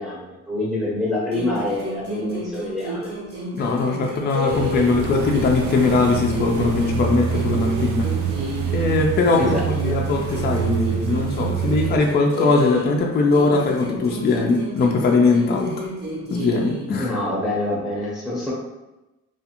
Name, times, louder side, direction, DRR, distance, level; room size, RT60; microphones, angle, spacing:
voice 1, 0.0-3.1 9.4-9.6 9.9-10.0 17.0-18.5, left 1 dB, ahead, -6 dB, 0.8 m, -26 dB
sound 1, 1.3-5.0 5.3-8.9 9.3-13.0 13.3-16.9, equal, 35° right, 0.8 m, -32 dB
voice 2, 3.5-8.1 8.7-15.9 16.3-17.1, left 3 dB, 35° left, 1 dB, 0.4 m, -20 dB
sound 2, 4.5-12.0, right 6 dB, 75° right, 0.5 m, -26 dB
2.4 x 2.4 x 2.9 m, 1.0 s
cardioid pair, 90°, 30 cm